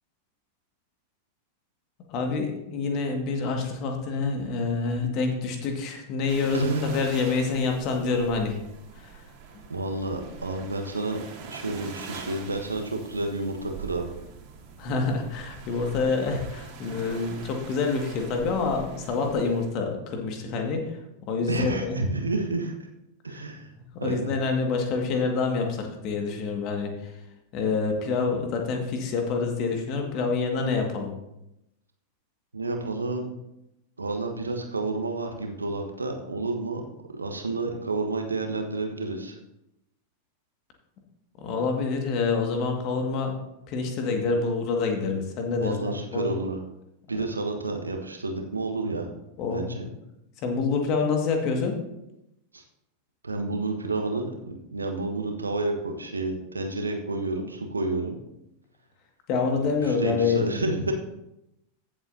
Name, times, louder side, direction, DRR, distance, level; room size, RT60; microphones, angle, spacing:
voice 1, 2.1-8.6 9.0-9.2 9.5-9.6 14.8-21.0 21.3-22.0 23.9-27.1 27.5-31.1 41.4-43.3 43.7-46.3 49.4-49.7 50.4-51.8 59.3-60.6, left 4 dB, 40° left, 3 dB, 1.9 m, -27 dB
sound 1, 6.3-19.7, right 6 dB, 45° right, 2.2 m, -44 dB
voice 2, 6.5-6.9 9.7-11.2 11.5-14.1 21.5-22.7 23.2-23.7 24.0-24.3 32.5-33.3 34.0-36.8 37.1-39.4 45.5-46.6 47.1-49.1 49.5-49.9 52.5-52.6 53.2-58.2 59.8-60.9, right 2 dB, 80° right, 4 dB, 1.3 m, -30 dB
15.5 x 7.6 x 2.8 m, 0.87 s
figure-of-eight pair, 90°, 0 cm